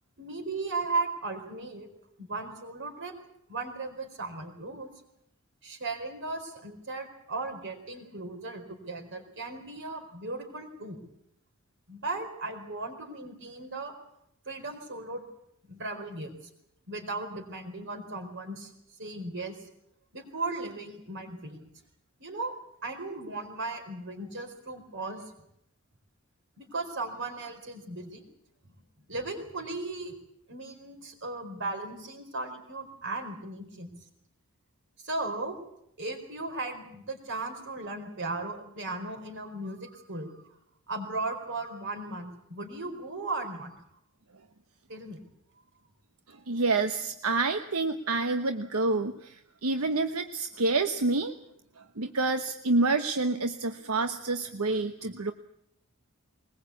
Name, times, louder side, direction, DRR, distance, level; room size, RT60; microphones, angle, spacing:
voice 1, 0.2-1.9 2.2-3.1 3.5-4.9 5.6-11.0 11.9-13.9 14.5-15.3 15.7-16.4 16.9-18.7 19.0-19.6 20.1-21.7 22.2-22.5 22.8-25.2 26.6-28.2 28.6-28.7 29.1-30.1 30.5-33.9 35.0-35.5 36.0-40.3 40.9-43.7 44.9-45.2, right 3 dB, 55° right, 6 dB, 4.5 m, -36 dB
voice 2, 46.3-51.3 52.0-55.3, right 3 dB, 80° right, 7 dB, 1.1 m, -28 dB
21.5 x 20.5 x 8.4 m, 0.77 s
head